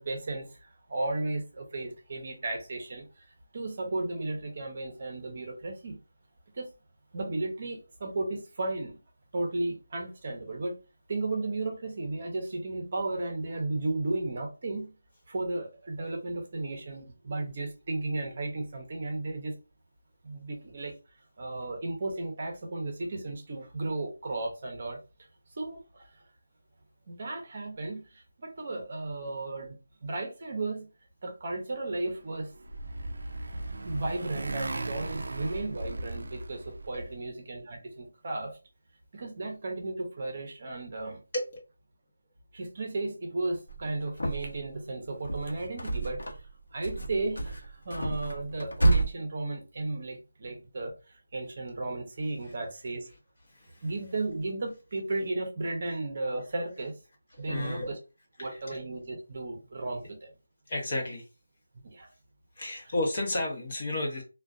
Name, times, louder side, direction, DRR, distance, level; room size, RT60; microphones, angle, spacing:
voice 1, 0.0-3.1 3.5-6.0 6.5-6.7 7.1-9.0 9.3-10.8 11.1-14.9 15.3-19.6 20.2-20.9 21.4-25.0 25.6-26.1 27.1-29.8 30.0-30.9 31.2-32.5 33.8-38.6 39.1-41.2 42.5-46.2 46.7-53.1 53.8-57.0 57.4-58.0 58.4-60.3 61.8-62.1, right 2 dB, 40° right, 2 dB, 0.7 m, -34 dB
Motorcycle, 32.1-37.2, right 2 dB, 65° right, 0.3 m, -37 dB
sound 1, 43.7-44.7 45.1-46.5 46.8-49.1, right 2 dB, 80° left, 0.8 m, -29 dB
voice 2, 53.5-53.9 57.3-57.9 58.4-58.8 60.7-61.3 62.6-64.2, left 1 dB, 40° left, 0 dB, 0.8 m, -33 dB
2.4 x 2.2 x 2.4 m, 0.31 s
figure-of-eight pair, 170°, 0 cm